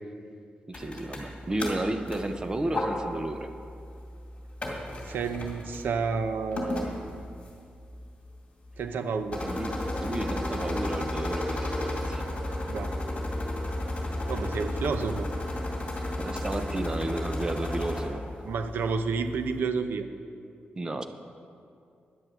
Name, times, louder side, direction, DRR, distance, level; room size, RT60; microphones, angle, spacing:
sound 1, 0.7-19.6, left 1 dB, 35° left, 2.3 m, -34 dB
voice 1, 0.7-3.5 9.4-12.5 16.2-18.2 20.8-21.0, right 2 dB, 20° right, 8 dB, 0.7 m, -32 dB
voice 2, 5.1-6.9 8.8-9.4 12.7-13.0 14.3-15.3 18.4-20.1, right 5 dB, 85° right, 8 dB, 0.8 m, -30 dB
10.0 x 9.6 x 7.6 m, 2.5 s
wide cardioid pair, 155°, 3 cm